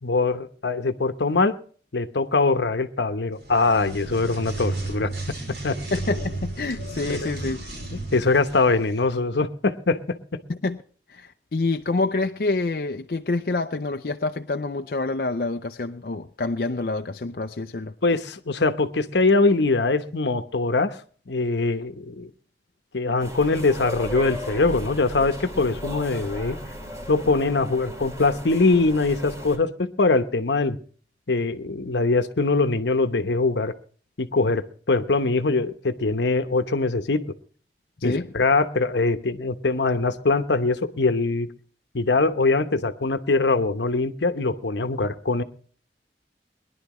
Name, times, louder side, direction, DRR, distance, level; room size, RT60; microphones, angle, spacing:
voice 1, 0.0-1.5 1.9-5.1 5.6-5.8 7.1-7.3 8.1-10.4 18.0-21.0 21.3-22.3 22.9-26.6 27.1-30.8 31.3-33.7 34.2-37.2 38.0-41.5 41.9-45.4, left 3 dB, 85° left, 1.0 m, -22 dB
sound 1, 3.3-9.0, right 2 dB, 70° right, 5.3 m, -33 dB
voice 2, 5.9-7.7 10.5-10.8 11.1-17.9 38.0-38.3, left 3 dB, 55° left, 0.5 m, -27 dB
sound 2, 23.2-29.6, equal, 20° right, 2.4 m, -36 dB
22.0 x 11.0 x 3.1 m
head